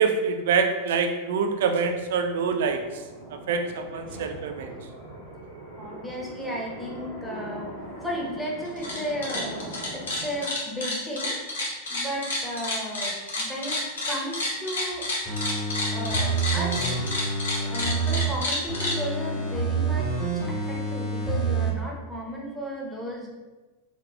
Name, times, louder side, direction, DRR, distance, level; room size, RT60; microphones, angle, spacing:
voice 1, 0.0-2.8 3.5-4.7, right 5 dB, 55° right, 5 dB, 0.3 m, -25 dB
sound 1, 1.6-10.4, right 1 dB, 85° left, 1.5 m, -41 dB
voice 2, 4.0-4.9 5.8-7.7 8.0-11.4 11.9-13.8 14.1-15.1 15.9-17.0 17.6-20.1 20.5-23.3, equal, ahead, -4 dB, 0.7 m, -34 dB
sound 2, 8.7-9.0 9.2-19.0, left 2 dB, 65° left, 0.7 m, -29 dB
sound 3, 15.3-18.3 18.7-21.7 22.1-22.2, right 3 dB, 35° left, 1.3 m, -27 dB
3.9 x 2.3 x 2.2 m, 1.2 s
figure-of-eight pair, 90°, 0 cm